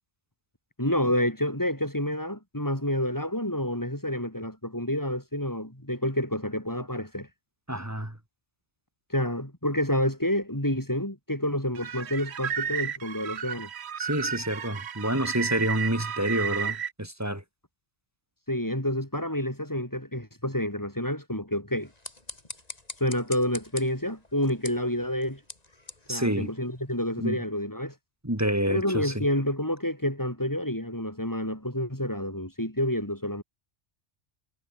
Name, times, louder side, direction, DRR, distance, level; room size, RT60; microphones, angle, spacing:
voice 1, 0.8-7.3 9.1-13.7 18.5-21.9 23.0-25.4 26.1-27.9 28.7-33.4, left 1 dB, 15° left, 4.8 m, -29 dB
voice 2, 7.7-8.2 14.0-17.4 26.1-26.5 27.2-27.4 28.2-29.2, right 1 dB, 15° right, 2.4 m, -28 dB
sound 1, 11.7-16.9, right 8 dB, 65° right, 1.2 m, -33 dB
sound 2, 21.8-27.1, left 2 dB, 35° left, 3.1 m, -45 dB
omnidirectional pair, 1.2 m